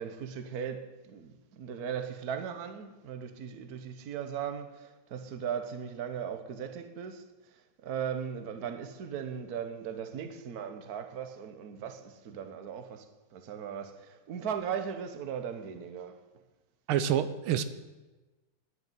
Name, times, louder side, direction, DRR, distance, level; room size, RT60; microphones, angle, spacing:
voice 1, 0.0-7.2 7.8-13.1 13.3-16.2, right 7 dB, 50° right, 1.4 m, -38 dB
voice 2, 16.9-17.6, right 10 dB, 85° right, 1.6 m, -27 dB
10.5 x 9.5 x 9.2 m
omnidirectional pair, 2.3 m